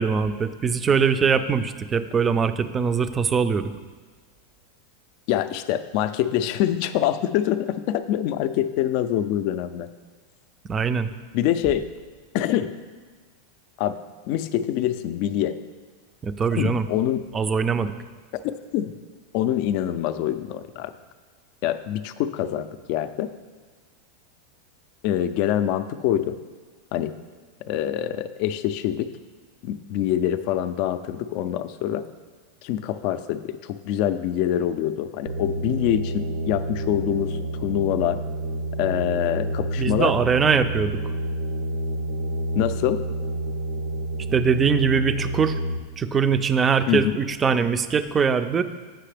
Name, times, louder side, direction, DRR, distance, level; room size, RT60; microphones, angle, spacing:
voice 1, 0.0-3.7 10.7-11.1 16.2-16.8 17.3-17.9 39.8-41.0 44.3-45.6 46.0-48.6, right 6 dB, 20° right, 11 dB, 0.3 m, -22 dB
voice 2, 5.3-9.9 11.3-11.8 12.3-12.7 13.8-14.0 14.3-15.6 16.6-17.2 18.4-18.9 19.3-20.9 21.6-23.3 25.0-26.4 26.9-27.1 27.7-29.1 29.6-32.0 32.6-38.2 38.8-40.1 42.6-43.0 46.9-47.2, left 11 dB, 55° left, 11 dB, 0.4 m, -25 dB
sound 1, 35.3-45.8, right 1 dB, 80° right, 0.6 m, -29 dB
7.6 x 5.7 x 3.4 m, 1.4 s
supercardioid pair, 130°, 0 cm